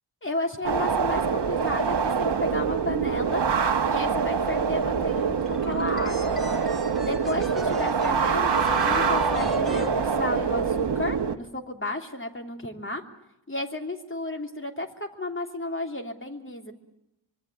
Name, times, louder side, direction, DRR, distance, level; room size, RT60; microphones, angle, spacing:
voice 1, 0.2-3.4 3.9-6.4 7.0-13.0 13.5-16.7, left 1 dB, 25° left, 3 dB, 3.1 m, -33 dB
sound 1, 0.6-11.4, right 6 dB, 65° right, 1.3 m, -25 dB
sound 2, 5.5-10.8, left 1 dB, ahead, 3.9 m, -36 dB
24.5 x 23.5 x 8.6 m, 0.87 s
wide cardioid pair, 95°, 44 cm